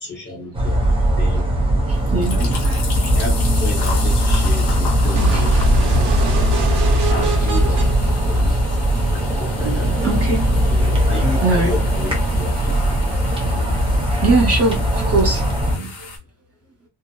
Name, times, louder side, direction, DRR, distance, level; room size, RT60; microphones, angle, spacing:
voice 1, 0.0-0.9 1.2-1.5 2.1-2.5 3.1-5.6 7.1-7.9 8.2-8.6 9.1-9.9 10.7-13.0, left 2 dB, 30° left, 0.7 m, -31 dB
sound 1, 0.5-15.8, equal, 15° right, 0.5 m, -19 dB
sound 2, 1.9-16.2, left 4 dB, 55° left, 1.0 m, -34 dB
voice 2, 1.9-3.7 4.6-5.8 7.4-7.5 8.5-8.7 9.6-10.7 11.4-11.7 12.3-16.1, right 3 dB, 40° right, 0.9 m, -25 dB
sound 3, 5.1-9.1, right 1 dB, 90° right, 0.8 m, -23 dB
2.7 x 2.0 x 2.2 m
wide cardioid pair, 170°, 39 cm